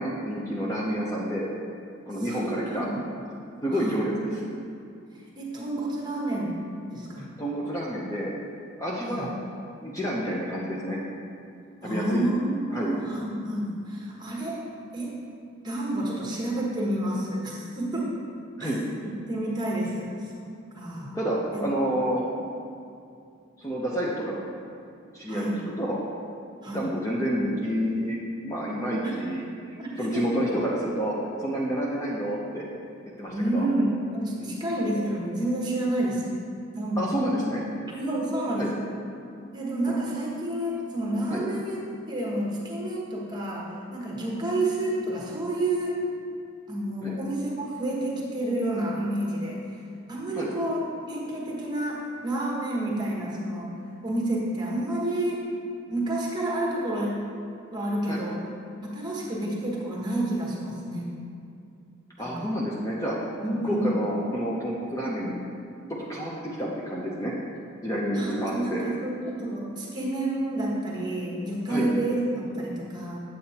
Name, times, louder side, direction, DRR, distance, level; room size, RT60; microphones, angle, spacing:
voice 1, 0.0-1.5 2.1-2.9 3.6-4.1 7.2-8.3 8.8-9.3 9.8-11.0 11.8-12.2 12.7-12.9 18.6-18.8 21.1-22.2 23.6-24.4 25.1-25.5 25.8-26.0 26.7-31.1 31.4-32.7 33.2-33.7 34.4-34.6 37.0-37.6 38.6-38.7 41.3-41.4 47.0-47.2 50.3-50.5 58.1-58.2 62.2-63.1 63.6-65.4 66.1-67.3 67.8-68.8 71.7-71.9, equal, 15° left, -5 dB, 0.6 m, -29 dB
voice 2, 2.2-3.0 3.7-4.0 5.1-6.6 6.9-7.3 9.0-9.3 11.8-14.6 14.9-15.1 15.6-18.1 18.6-18.7 19.0-20.5 20.8-21.2 21.5-21.6 25.3-25.6 26.6-26.8 29.0-29.2 29.8-30.2 33.3-36.4 36.7-37.1 38.0-38.8 39.5-41.8 42.1-46.0 46.7-49.6 50.1-53.7 54.0-55.4 55.9-57.3 57.7-58.4 58.8-61.1 62.2-62.5 63.4-63.9 68.1-73.2, right 1 dB, 20° right, -4 dB, 1.2 m, -29 dB
8.6 x 7.7 x 2.8 m, 2.5 s
head